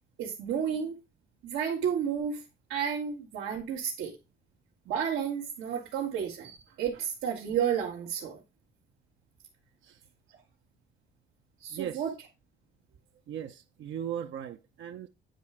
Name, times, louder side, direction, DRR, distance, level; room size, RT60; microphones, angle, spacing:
voice 1, 0.2-1.0 1.4-2.4 2.7-4.2 4.9-8.4 11.6-12.1, right 8 dB, 90° right, 1.5 m, -31 dB
voice 2, 11.7-12.0 13.3-15.1, right 9 dB, 75° right, 0.8 m, -38 dB
9.2 x 3.3 x 4.8 m
cardioid pair, 90°, 20 cm